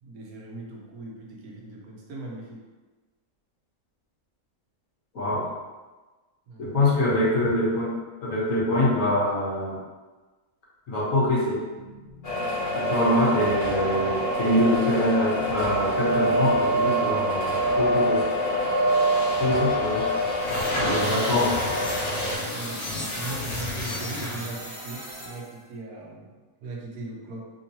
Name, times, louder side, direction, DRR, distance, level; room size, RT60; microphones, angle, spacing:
voice 1, 0.0-2.6 6.5-6.8 13.4-13.5 19.3-19.7 20.0-20.2 21.1-21.2 22.5-26.3 26.6-27.5, right 3 dB, 80° right, -2 dB, 1.2 m, -39 dB
voice 2, 5.1-5.5 6.6-7.9 8.2-9.8 10.9-11.6 12.7-18.2 19.4-20.0 20.6-21.7, left 1 dB, 65° left, -7 dB, 1.4 m, -24 dB
sound 1, 11.6-25.7, right 1 dB, 30° right, 0.8 m, -42 dB
sound 2, 12.2-22.4, right 1 dB, 45° left, 0.9 m, -25 dB
sound 3, 20.3-24.7, left 2 dB, 85° left, 1.3 m, -32 dB
3.5 x 2.9 x 2.7 m, 1.3 s
omnidirectional pair, 1.5 m